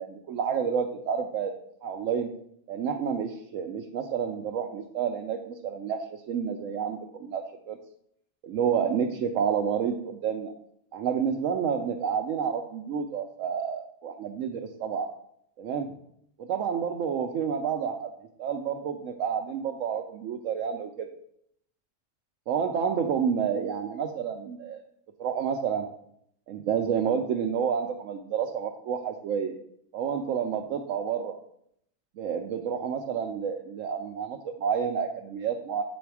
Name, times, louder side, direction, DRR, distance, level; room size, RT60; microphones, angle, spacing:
voice 1, 0.0-1.5 1.8-2.3 2.7-7.8 8.4-10.5 10.9-15.1 15.6-15.9 16.4-18.1 18.4-21.1 22.5-24.8 25.2-25.9 26.5-29.5 29.9-31.4 32.2-35.8, right 7 dB, 85° right, 3 dB, 1.0 m, -29 dB
7.9 x 4.2 x 4.7 m, 0.71 s
omnidirectional pair, 1.3 m